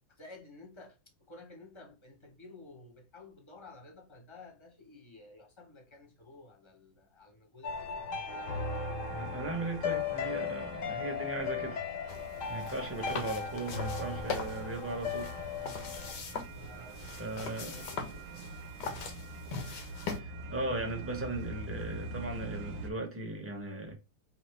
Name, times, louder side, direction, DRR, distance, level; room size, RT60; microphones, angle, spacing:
voice 1, 0.1-8.4 16.5-18.4, left 2 dB, 20° left, 0.9 m, -53 dB
sound 1, 7.6-16.1, left 5 dB, 60° left, 1.0 m, -37 dB
sound 2, 8.3-22.9, right 3 dB, 60° right, 1.0 m, -45 dB
voice 2, 9.1-11.8 12.5-15.3 17.2-17.8 20.1-23.9, right 2 dB, 10° right, 0.8 m, -37 dB
sound 3, 12.1-20.2, left 5 dB, 90° left, 1.5 m, -41 dB
5.2 x 2.8 x 3.2 m
omnidirectional pair, 1.8 m